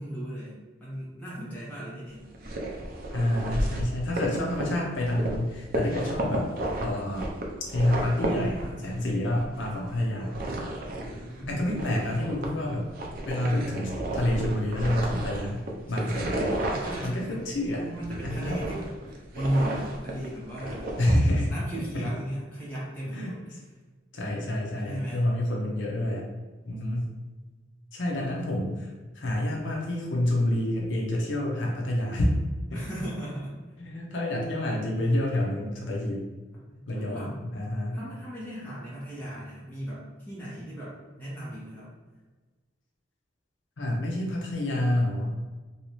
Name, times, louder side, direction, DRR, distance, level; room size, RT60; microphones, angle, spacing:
voice 1, 0.0-2.3 8.5-9.5 10.9-11.7 15.9-16.4 16.6-17.4 17.7-21.0 21.5-23.6 24.8-25.3 32.7-33.5 36.7-37.4 37.9-41.9, right 1 dB, 10° left, -10 dB, 1.3 m, -36 dB
sound 1, 2.3-5.4 5.7-9.0 9.4-17.2 17.5-21.2, right 1 dB, 50° right, 0.5 m, -32 dB
voice 2, 3.1-6.5 6.8-7.3 7.7-10.4 11.5-12.9 13.3-16.5 17.0-17.8 18.2-18.6 21.0-22.1 23.1-23.3 24.1-26.3 26.6-27.1 27.9-32.3 32.7-32.8 33.8-36.2 36.9-38.0 43.8-45.3, left 1 dB, 75° left, -2 dB, 0.6 m, -28 dB
3.1 x 2.7 x 3.0 m, 1.3 s
head